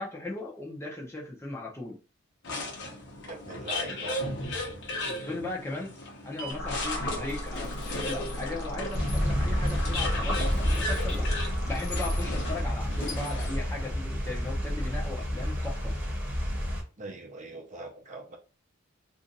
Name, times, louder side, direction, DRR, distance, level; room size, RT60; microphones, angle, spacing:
voice 1, 0.0-2.0 5.0-6.0 6.2-11.3 11.6-15.9, left 2 dB, 10° left, 0.7 m, -37 dB
sound 1, 2.4-13.7, left 2 dB, 55° left, 1.0 m, -36 dB
voice 2, 3.3-4.2 17.0-18.4, right 2 dB, 35° right, 0.7 m, -41 dB
sound 2, 6.5-13.0, left 1 dB, 80° left, 1.0 m, -37 dB
sound 3, 8.9-16.8, equal, 10° right, 1.0 m, -30 dB
2.6 x 2.5 x 3.9 m
head